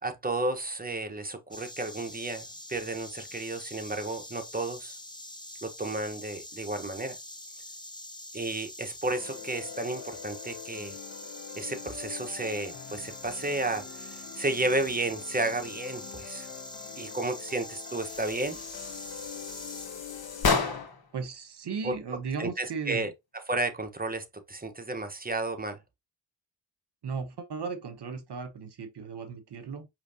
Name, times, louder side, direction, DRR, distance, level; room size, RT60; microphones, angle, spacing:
voice 1, 0.0-5.0 5.6-7.2 8.3-11.0 11.5-16.5 17.0-18.6 21.8-21.9 22.4-23.1 23.5-25.8, right 2 dB, 20° right, 1.2 m, -32 dB
Insect, 1.5-19.9, left 1 dB, 10° left, 1.1 m, -44 dB
sound 1, 9.1-20.9, left 9 dB, 65° left, 1.3 m, -45 dB
sound 2, 18.0-21.1, left 4 dB, 50° left, 1.4 m, -32 dB
voice 2, 21.1-23.0 27.0-29.9, right 5 dB, 55° right, 1.1 m, -36 dB
5.0 x 3.3 x 2.8 m
supercardioid pair, 45°, 48 cm